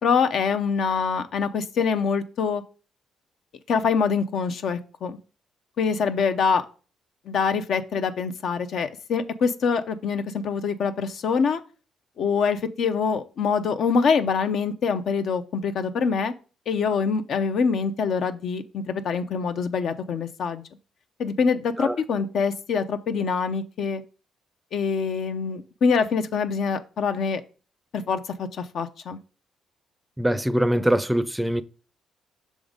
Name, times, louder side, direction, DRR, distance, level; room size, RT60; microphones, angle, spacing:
voice 1, 0.0-2.6 3.7-5.2 5.8-6.6 7.3-11.6 12.2-16.3 16.7-20.6 21.2-24.0 24.7-27.4 27.9-29.2, left 5 dB, 65° left, 0.6 m, -25 dB
voice 2, 30.2-31.6, equal, 5° right, 0.5 m, -23 dB
6.2 x 3.8 x 5.0 m
cardioid pair, 90°, 0 cm